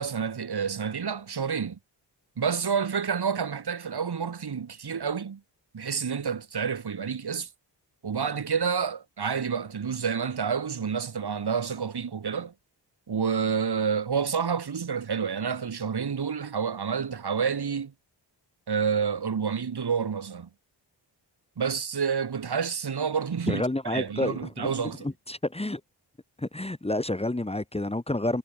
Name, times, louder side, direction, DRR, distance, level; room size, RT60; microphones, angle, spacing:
voice 1, 0.0-1.8 2.4-5.4 5.7-7.5 8.0-12.5 13.1-17.9 18.7-20.5 21.6-23.6 23.9-25.1, right 6 dB, 60° right, 4.4 m, -29 dB
voice 2, 23.5-25.8 26.4-28.4, left 1 dB, 15° left, 1.8 m, -29 dB
cardioid pair, 85°, 44 cm